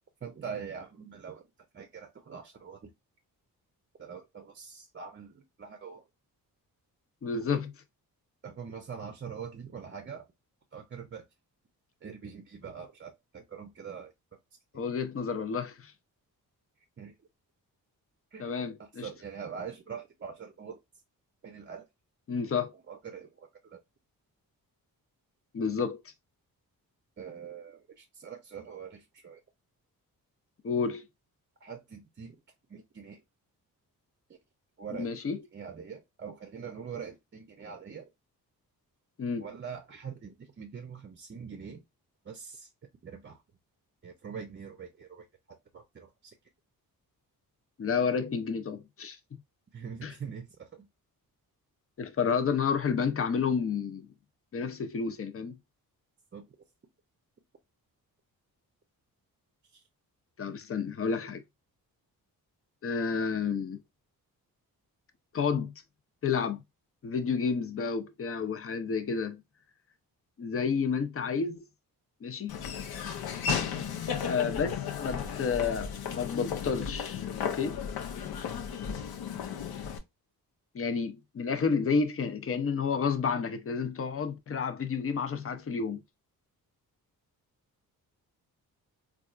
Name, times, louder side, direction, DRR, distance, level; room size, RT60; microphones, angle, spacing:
voice 1, 0.2-1.4 1.7-2.9 4.0-6.0 8.4-10.3 10.7-11.2 12.0-14.1 17.0-17.1 18.3-18.5 18.8-20.8 21.4-21.9 22.9-23.8 27.2-29.4 31.6-32.4 32.7-33.2 34.8-35.1 35.5-38.1 39.4-41.8 42.2-42.7 43.0-43.4 44.0-46.3 49.7-50.9 56.3-56.4 59.7-59.8, right 6 dB, 30° right, 0.6 m, -43 dB
voice 2, 7.2-7.7 14.7-15.9 18.4-19.1 22.3-22.7 25.5-26.0 30.6-31.1 34.9-35.4 39.2-39.5 47.8-49.2 50.0-50.1 52.0-54.1 54.5-55.6 60.4-61.4 62.8-63.8 65.3-65.7 66.2-66.6 67.0-69.4 70.4-71.6 72.2-72.6 74.2-77.2 77.5-77.8 80.7-86.0, left 5 dB, 40° left, 0.6 m, -30 dB
Laughter / Walk footsteps, 72.5-80.0, left 7 dB, 80° left, 0.7 m, -34 dB
4.0 x 2.4 x 2.4 m
cardioid pair, 95°, 36 cm